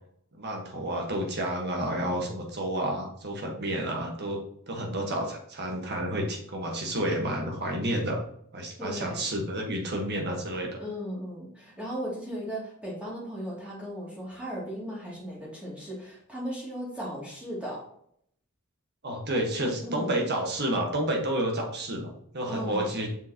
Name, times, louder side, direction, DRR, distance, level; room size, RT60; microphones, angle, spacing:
voice 1, 0.3-8.2 8.5-10.8 19.0-23.1, right 1 dB, 50° right, 1 dB, 1.6 m, -30 dB
voice 2, 8.8-9.3 10.8-17.8 19.8-20.2 22.5-23.0, equal, 5° right, -6 dB, 2.7 m, -36 dB
7.1 x 5.8 x 3.0 m, 0.69 s
head